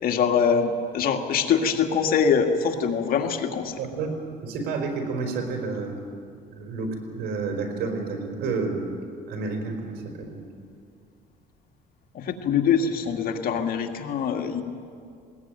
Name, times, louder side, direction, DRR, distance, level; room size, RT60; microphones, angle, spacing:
voice 1, 0.0-3.8 12.1-14.6, left 6 dB, 60° left, 4 dB, 2.1 m, -23 dB
voice 2, 3.8-4.1 4.4-6.0 6.5-8.9 9.3-10.4, right 4 dB, 75° right, 4 dB, 4.4 m, -30 dB
20.5 x 19.5 x 9.1 m, 2.3 s
cardioid pair, 110°, 17 cm